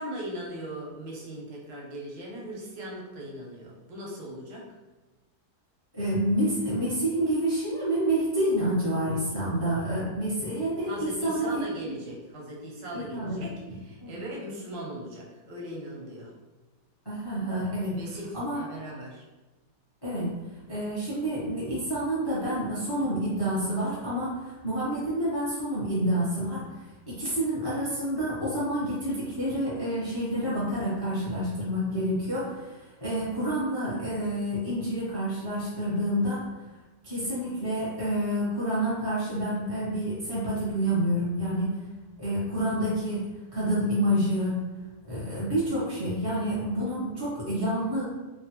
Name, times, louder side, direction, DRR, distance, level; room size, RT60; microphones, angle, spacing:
voice 1, 0.0-4.7 10.9-16.3 17.9-19.2, right 1 dB, 85° right, -3 dB, 1.4 m, -39 dB
voice 2, 5.9-11.6 12.9-13.4 13.7-14.2 17.0-18.0 18.3-18.6 20.0-20.4 20.7-26.7 27.1-36.5 37.0-41.8 42.2-44.6 45.1-48.0, right 1 dB, 25° left, -8 dB, 0.6 m, -28 dB
3.3 x 2.2 x 2.9 m, 1.1 s
omnidirectional pair, 1.9 m